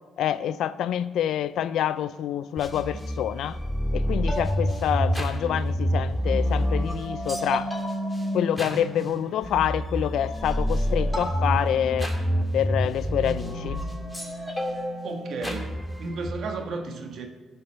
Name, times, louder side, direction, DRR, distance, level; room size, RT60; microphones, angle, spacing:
voice 1, 0.2-3.6 3.9-7.7 8.3-12.1 12.5-13.8, left 10 dB, 80° left, 0.4 m, -27 dB
sound 1, 2.6-16.3, equal, 10° left, 2.1 m, -28 dB
voice 2, 15.0-15.7 16.0-17.3, right 3 dB, 65° right, 1.5 m, -33 dB
14.5 x 5.4 x 5.9 m
cardioid pair, 90°, 0 cm